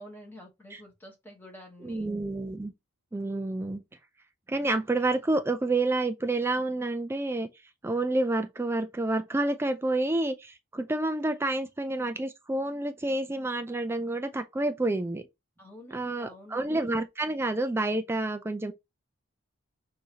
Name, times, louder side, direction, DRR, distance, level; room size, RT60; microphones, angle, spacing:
voice 1, 0.0-2.1 15.6-16.7, equal, 10° left, 1.1 m, -48 dB
voice 2, 1.8-2.7 3.1-3.8 4.5-7.5 7.8-15.2 15.9-18.7, right 2 dB, 10° right, 0.3 m, -29 dB
6.3 x 2.7 x 2.9 m
head